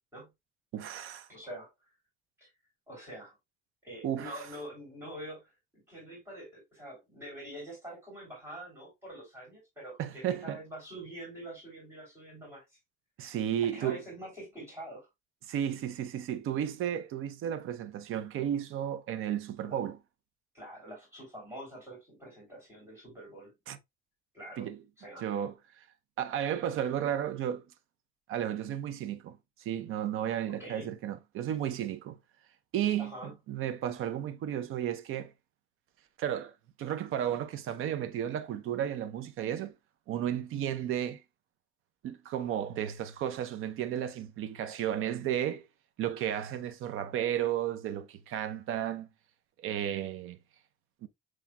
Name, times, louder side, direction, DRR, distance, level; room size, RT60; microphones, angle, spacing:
voice 1, 0.7-1.3 4.0-4.4 10.0-10.6 13.2-14.0 15.5-20.0 23.7-23.8 24.6-24.8 25.2-25.9 26.2-27.7 28.3-32.2 32.7-35.3 36.2-36.5 36.8-39.7 40.1-41.2 42.0-45.7 46.0-49.1 49.6-50.4 51.0-51.1, right 10 dB, 90° right, 0.7 m, -33 dB
voice 2, 1.3-1.7 2.4-2.5 2.9-3.4 3.8-12.6 13.6-15.1 19.6-19.8 20.5-23.6 24.3-24.7 25.0-25.2 30.5-30.9 33.0-33.3, right 1 dB, 10° right, 3.3 m, -45 dB
7.3 x 3.2 x 2.2 m
cardioid pair, 155°, 21 cm